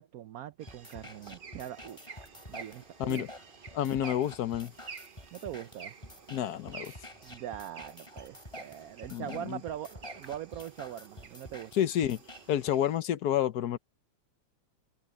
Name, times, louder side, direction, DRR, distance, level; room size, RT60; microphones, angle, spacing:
voice 1, 0.0-2.1 2.5-3.2 5.3-6.0 7.2-11.8, right 11 dB, 65° right, 1.0 m, -42 dB
sound 1, 0.6-13.0, right 5 dB, 40° right, 0.8 m, -51 dB
sound 2, 0.7-12.7, left 1 dB, 15° left, 7.0 m, -49 dB
voice 2, 3.7-4.7 6.3-6.9 9.1-9.6 11.7-12.2 12.5-13.8, left 10 dB, 60° left, 1.2 m, -29 dB
omnidirectional pair, 2.0 m